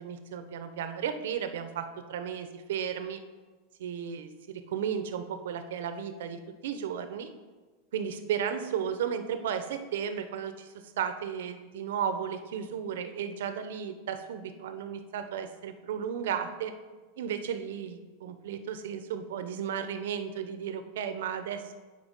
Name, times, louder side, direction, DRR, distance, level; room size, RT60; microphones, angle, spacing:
voice 1, 0.0-3.2 3.8-7.3 7.9-16.7 17.2-21.7, right 8 dB, 75° right, 8 dB, 0.7 m, -34 dB
7.2 x 4.6 x 5.3 m, 1.3 s
supercardioid pair, 180°, 0 cm